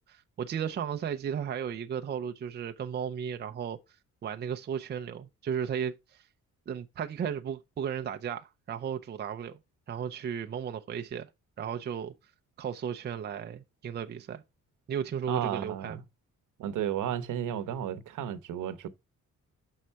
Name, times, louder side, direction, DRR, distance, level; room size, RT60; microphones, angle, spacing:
voice 1, 0.0-3.8 4.2-6.2 6.7-9.6 9.9-11.3 11.6-12.1 12.6-14.4 14.9-16.0, right 8 dB, 35° right, 0.5 m, -35 dB
voice 2, 15.3-16.0 16.6-18.9, right 10 dB, 80° right, 0.9 m, -33 dB
6.3 x 5.5 x 4.5 m
cardioid pair, 155°, 31 cm